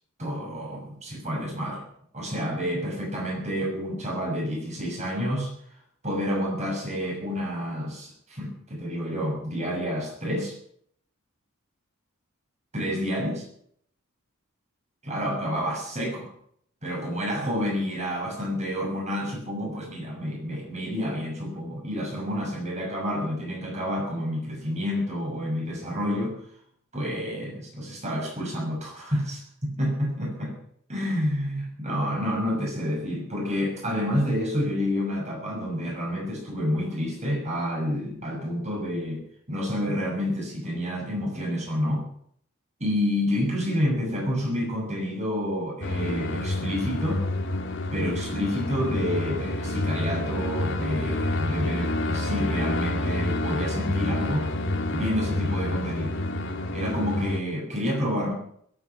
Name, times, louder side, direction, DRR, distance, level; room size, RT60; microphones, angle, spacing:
voice 1, 0.2-1.8 2.1-5.5 6.0-10.6 12.7-13.5 15.0-16.3 16.8-26.4 26.9-30.5 30.9-39.2 39.5-42.1 42.8-47.3 47.9-54.5 54.9-56.2 56.7-58.3, equal, 35° right, -1 dB, 6.4 m, -29 dB
sound 1, 45.8-57.4, left 1 dB, 60° left, 2.1 m, -28 dB
22.0 x 9.1 x 5.9 m, 0.65 s
head